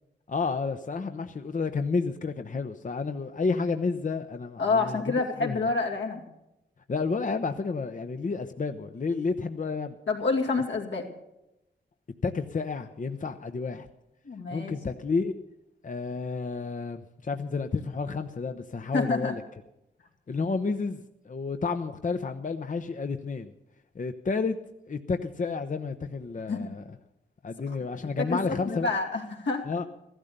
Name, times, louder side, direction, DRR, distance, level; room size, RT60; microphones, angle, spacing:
voice 1, 0.3-5.1 5.4-5.7 6.9-10.0 12.2-13.9 14.5-15.3 15.8-19.4 20.3-23.5 23.9-24.6 24.9-26.8 27.4-28.9 29.6-29.8, left 4 dB, 45° left, 7 dB, 0.8 m, -30 dB
voice 2, 4.6-6.2 10.1-11.1 14.2-14.8 18.9-19.4 26.5-26.7 27.7-27.8 28.0-29.6, left 3 dB, 80° left, 0 dB, 2.5 m, -28 dB
14.5 x 12.5 x 6.7 m, 0.90 s
cardioid pair, 50°, 19 cm